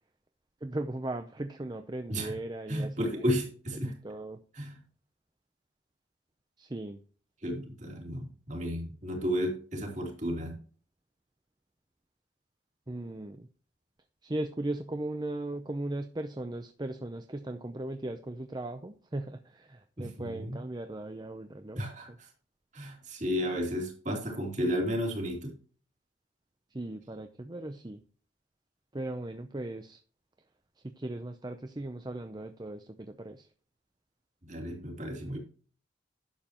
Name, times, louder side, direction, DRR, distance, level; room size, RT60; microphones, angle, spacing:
voice 1, 0.6-3.3 3.8-4.4 6.6-7.0 12.9-13.5 14.2-22.2 26.7-28.0 28.9-30.0 30.8-33.5, right 1 dB, 25° right, 8 dB, 0.6 m, -38 dB
voice 2, 2.7-3.9 4.5-4.8 7.4-10.6 20.0-20.6 21.8-22.1 22.7-25.5 34.4-35.4, equal, 40° right, 1 dB, 3.1 m, -33 dB
11.5 x 7.6 x 3.0 m, 0.41 s
head